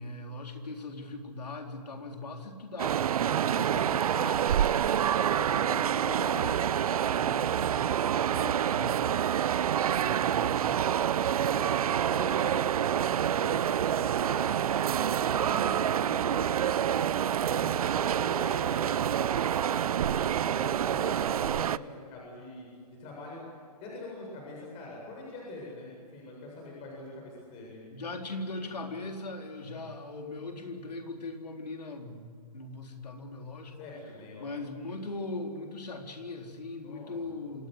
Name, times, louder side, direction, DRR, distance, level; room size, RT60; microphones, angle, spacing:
voice 1, 0.0-4.9 5.2-7.7 8.1-9.4 9.9-10.9 27.9-33.8 34.4-37.7, left 2 dB, 85° left, 3 dB, 4.0 m, -40 dB
sound 1, 2.8-21.8, right 9 dB, 65° right, 0.6 m, -27 dB
voice 2, 11.5-16.6 16.9-22.7 23.0-23.4 23.8-27.8 33.8-34.5 36.8-37.3, left 1 dB, 30° left, -2 dB, 7.8 m, -43 dB
27.0 x 19.0 x 8.0 m, 2.1 s
hypercardioid pair, 135°, 20 cm